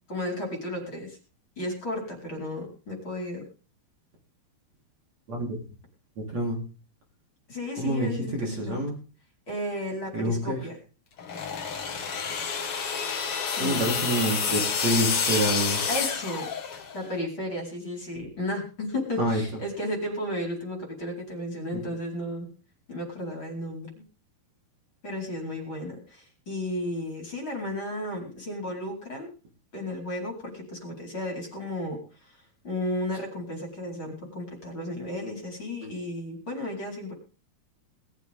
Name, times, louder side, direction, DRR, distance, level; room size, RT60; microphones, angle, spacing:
voice 1, 0.1-1.2 1.6-3.4 7.5-8.8 9.5-10.7 13.5-13.9 15.9-16.5 16.9-22.5 22.9-23.9 25.0-29.3 29.7-37.1, left 1 dB, 30° left, 1 dB, 5.2 m, -33 dB
voice 2, 7.8-9.0 10.1-10.6 13.6-15.8 19.2-19.4 21.7-21.8, right 1 dB, 40° right, -1 dB, 4.8 m, -27 dB
sound 1, 11.2-17.0, left 6 dB, 45° left, 2.2 m, -29 dB
20.5 x 14.0 x 3.7 m, 0.37 s
omnidirectional pair, 4.7 m